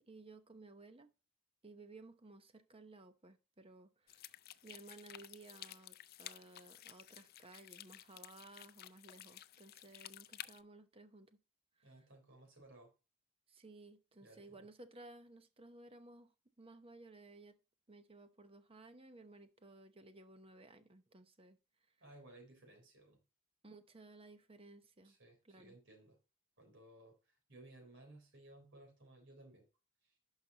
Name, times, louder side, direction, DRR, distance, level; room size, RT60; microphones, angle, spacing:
voice 1, 0.1-1.1 1.6-4.3 4.6-11.4 11.8-12.0 13.5-16.3 16.6-17.6 17.9-21.6 23.6-25.2 25.4-25.8, right 2 dB, 25° right, 0.8 m, -57 dB
sound 1, 4.1-10.6, left 12 dB, 45° left, 0.4 m, -53 dB
voice 2, 11.8-12.9 14.2-14.6 22.0-23.2 25.0-26.2 26.6-29.7 30.0-30.2, right 1 dB, 60° right, 3.5 m, -59 dB
11.0 x 5.7 x 2.8 m
head